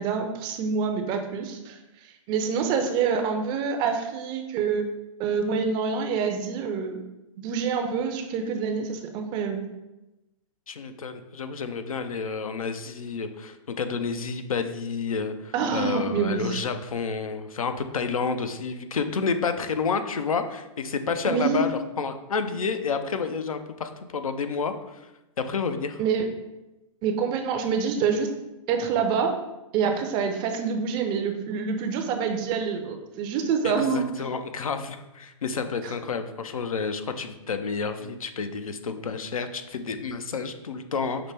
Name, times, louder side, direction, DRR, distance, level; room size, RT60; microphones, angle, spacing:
voice 1, 0.0-1.8 2.0-4.8 5.2-7.0 7.4-9.7 15.5-16.6 21.2-21.7 26.0-26.3 27.0-28.3 28.7-29.3 29.7-34.1 35.8-35.9, right 6 dB, 25° right, 5 dB, 0.4 m, -26 dB
voice 2, 10.7-25.0 25.5-26.0 33.6-41.3, left 5 dB, 85° left, 8 dB, 0.5 m, -30 dB
5.7 x 2.1 x 3.3 m, 0.99 s
hypercardioid pair, 125°, 17 cm